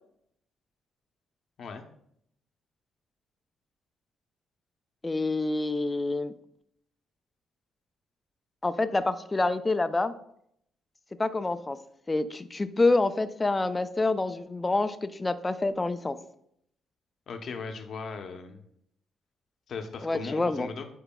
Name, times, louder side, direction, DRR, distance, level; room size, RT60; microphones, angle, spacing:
voice 1, 5.0-6.3 8.6-10.1 11.2-11.8 12.1-16.2 20.0-20.7, left 2 dB, 20° left, 11 dB, 0.4 m, -27 dB
voice 2, 17.3-18.6 19.7-20.9, left 4 dB, 60° left, 5 dB, 0.8 m, -38 dB
8.8 x 4.6 x 2.3 m, 0.71 s
cardioid pair, 90°, 0 cm